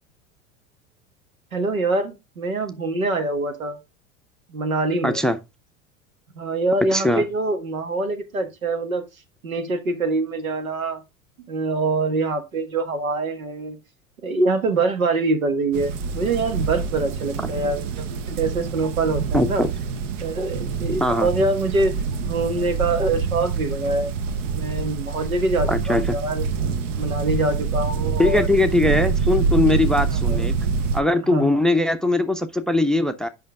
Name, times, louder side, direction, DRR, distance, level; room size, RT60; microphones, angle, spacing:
voice 1, 1.5-3.8 4.5-5.2 6.4-9.0 9.4-11.0 11.5-13.8 14.2-19.6 20.2-24.1 24.5-26.4 27.0-28.5 30.1-30.5 31.3-31.6, right 2 dB, 85° right, 1.6 m, -24 dB
voice 2, 5.0-5.4 6.9-7.2 19.3-19.7 21.0-21.3 25.7-26.2 28.2-30.5 30.9-33.3, left 2 dB, ahead, 0.6 m, -20 dB
sound 1, 15.7-31.0, right 5 dB, 60° right, 1.0 m, -26 dB
8.5 x 5.6 x 3.5 m
figure-of-eight pair, 80°, 41 cm